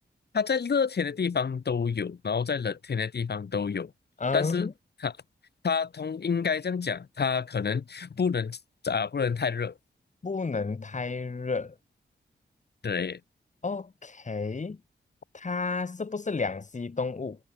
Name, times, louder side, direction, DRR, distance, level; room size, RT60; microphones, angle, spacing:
voice 1, 0.3-3.9 4.3-4.7 5.0-5.1 5.6-8.6 8.8-9.7 12.8-13.2, left 6 dB, 60° left, 2.7 m, -28 dB
voice 2, 4.2-4.7 10.2-11.7 13.6-14.8 15.3-17.4, left 4 dB, 40° left, 2.2 m, -31 dB
cardioid pair, 70°, 19 cm